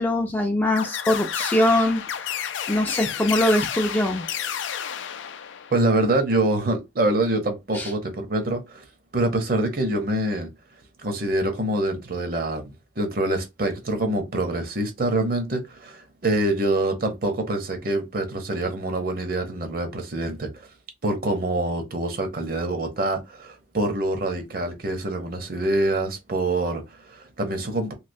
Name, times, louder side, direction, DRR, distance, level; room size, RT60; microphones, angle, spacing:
voice 1, 0.0-2.0 2.7-4.3 7.7-7.9, left 1 dB, 10° left, 0.4 m, -22 dB
sound 1, 0.8-5.9, left 9 dB, 75° left, 0.4 m, -31 dB
voice 2, 5.7-8.8 9.1-10.5 11.0-20.7 21.0-27.9, right 2 dB, 50° right, 0.8 m, -25 dB
3.1 x 2.8 x 2.6 m
head